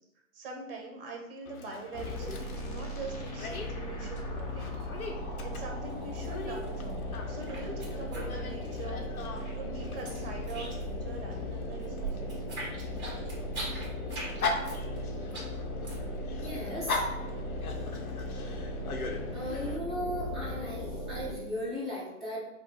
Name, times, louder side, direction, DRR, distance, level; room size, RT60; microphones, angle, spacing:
voice 1, 0.3-4.8 5.4-12.4, right 3 dB, 40° right, 1 dB, 1.2 m, -43 dB
Dog, 1.5-19.8, left 3 dB, 90° left, 0.9 m, -41 dB
sound 1, 1.9-21.6, left 1 dB, 30° left, 0.6 m, -37 dB
sound 2, 5.9-6.9 7.2-9.0 9.2-11.1 11.4-16.2, right 2 dB, 20° right, 1.5 m, -41 dB
voice 2, 16.4-17.0 19.3-22.5, equal, ahead, -11 dB, 0.9 m, -36 dB
5.5 x 2.0 x 3.9 m, 0.86 s
hypercardioid pair, 150°, 42 cm